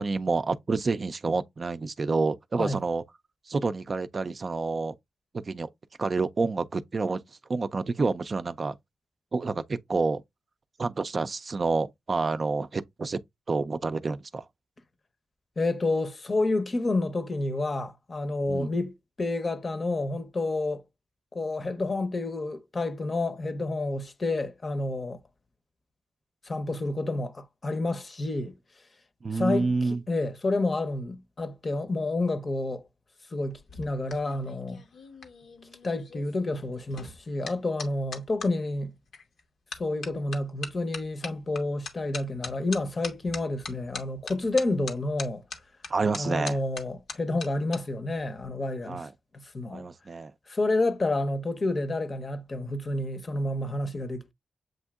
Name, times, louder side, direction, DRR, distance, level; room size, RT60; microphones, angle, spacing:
voice 1, 0.0-3.0 3.5-4.9 5.5-5.7 6.0-7.2 7.5-8.8 9.3-10.2 10.8-13.2 13.5-14.5 18.5-18.7 29.2-30.0 45.9-46.6 48.8-49.1 49.7-50.3, right 3 dB, 45° right, 0.4 m, -28 dB
voice 2, 15.6-20.8 21.3-25.2 26.4-28.6 29.3-29.7 30.1-32.8 33.3-34.8 35.8-38.9 39.8-45.4 46.2-49.1 49.3-49.9 50.5-54.3, left 2 dB, 45° left, 0.7 m, -29 dB
sound 1, 33.5-38.5 39.1-39.4 39.7-47.8 48.1-48.5, left 4 dB, 80° left, 0.9 m, -41 dB
7.6 x 2.7 x 2.3 m
cardioid pair, 60°, 0 cm